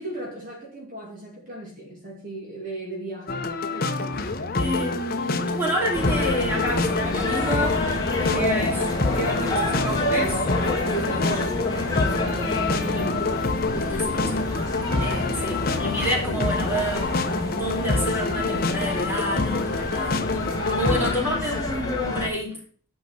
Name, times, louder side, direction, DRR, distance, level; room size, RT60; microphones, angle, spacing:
voice 1, 0.0-4.6 10.9-11.8 12.2-13.3, right 1 dB, 40° right, 2.4 m, -37 dB
sound 1, 3.3-21.2, left 3 dB, 45° left, 0.8 m, -27 dB
voice 2, 4.6-7.8 8.1-8.9 9.1-10.5 11.1-11.5 12.9-13.1 13.9-14.5 15.0-17.2 17.5-20.3 20.7-22.6, equal, 10° right, 3.0 m, -29 dB
sound 2, 5.9-22.3, left 2 dB, 15° left, 2.3 m, -28 dB
9.0 x 5.4 x 6.0 m
head